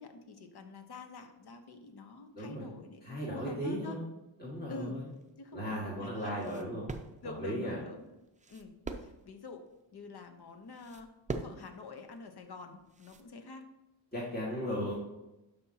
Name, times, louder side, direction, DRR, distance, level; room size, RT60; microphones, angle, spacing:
voice 1, 0.0-4.0 4.7-5.0 5.4-6.4 7.2-8.1 8.5-8.7 9.0-9.6 9.9-11.1 11.4-13.7, left 3 dB, 60° left, 7 dB, 1.1 m, -46 dB
voice 2, 2.3-2.7 3.0-4.0 4.4-5.1 5.5-6.8 7.2-7.8 14.1-14.9, equal, 20° left, -6 dB, 2.0 m, -36 dB
sound 1, 5.1-13.3, right 3 dB, 15° right, 0.5 m, -45 dB
11.0 x 5.3 x 2.9 m, 0.97 s
cardioid pair, 100°, 45 cm